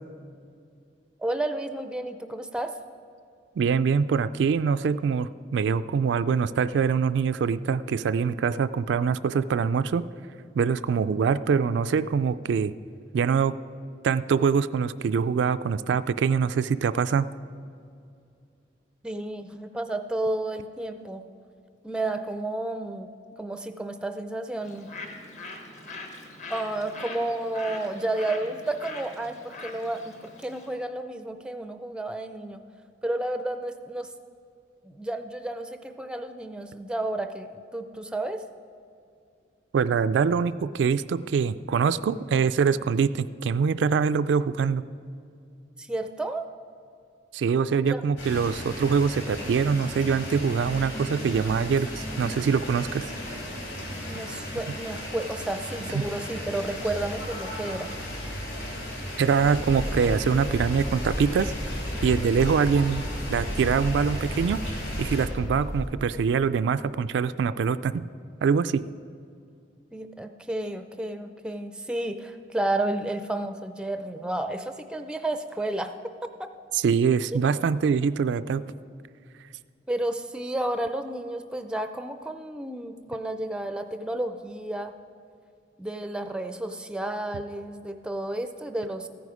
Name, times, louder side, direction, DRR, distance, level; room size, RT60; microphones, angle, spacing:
voice 1, 1.2-2.7 19.0-21.2 21.8-23.1 23.4-24.9 26.5-32.6 33.0-34.1 34.8-38.4 45.8-46.5 47.9-48.0 54.1-57.9 69.9-75.9 76.4-76.5 79.9-84.9 85.8-89.1, right 1 dB, 5° right, 8 dB, 0.4 m, -31 dB
voice 2, 3.6-10.0 10.6-12.7 13.1-13.5 14.0-17.3 39.7-44.8 47.3-53.1 55.9-56.0 59.2-61.5 62.0-64.6 65.0-68.1 68.4-68.8 76.7-78.6, right 6 dB, 80° right, 13 dB, 0.3 m, -24 dB
Bird, 24.6-30.7, left 3 dB, 40° left, 1.2 m, -42 dB
sound 1, 48.2-65.3, left 1 dB, 90° left, 3.5 m, -36 dB
sound 2, 59.4-65.9, equal, 65° left, 2.2 m, -33 dB
14.5 x 9.3 x 4.9 m, 2.4 s
head